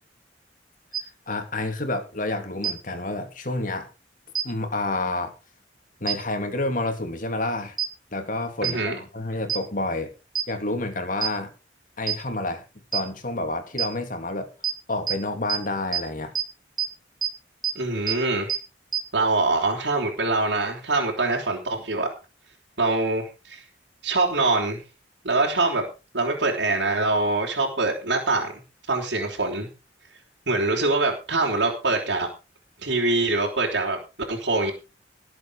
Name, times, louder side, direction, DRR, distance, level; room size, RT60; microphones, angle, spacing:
sound 1, 0.9-1.0 2.6-2.7 4.3-4.4 6.1-6.2 7.8-7.9 8.6-8.7 9.5-9.6 10.3-10.4 11.2-11.3 12.1-12.2 12.9-13.0 13.8-13.9 14.6-14.7 15.1-15.2 15.5-15.6 15.9-16.0 16.3-16.4 16.8-16.9 17.2-17.3 17.6-17.7 18.1-18.2 18.5-18.6 18.9-19.0, right 9 dB, 25° right, 2.4 m, -24 dB
voice 1, 1.3-3.9 4.4-5.3 6.0-7.8 8.1-10.1 10.5-11.5 12.0-12.6 12.9-14.5 14.9-16.3, left 2 dB, 50° left, 7 dB, 2.9 m, -29 dB
voice 2, 8.6-9.0 17.8-18.5 19.1-22.1 22.8-23.6 24.0-24.8 25.2-25.8 26.1-28.6 28.9-29.7 30.5-32.3 32.8-34.0 34.3-34.7, right 3 dB, 85° right, -1 dB, 3.7 m, -24 dB
19.0 x 7.8 x 5.0 m, 0.31 s
head